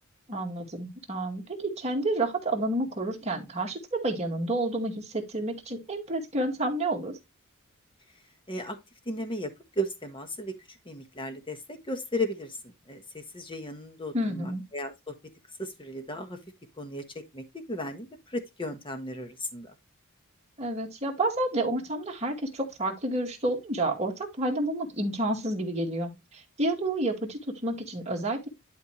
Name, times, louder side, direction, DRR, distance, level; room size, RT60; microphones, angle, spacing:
voice 1, 0.3-7.1 14.1-14.6 20.6-28.5, right 1 dB, 30° right, 2.1 m, -30 dB
voice 2, 9.1-9.5 9.8-15.1 15.6-16.4 16.8-17.0 17.3-19.7, equal, 25° left, 1.4 m, -35 dB
11.5 x 4.4 x 3.1 m
head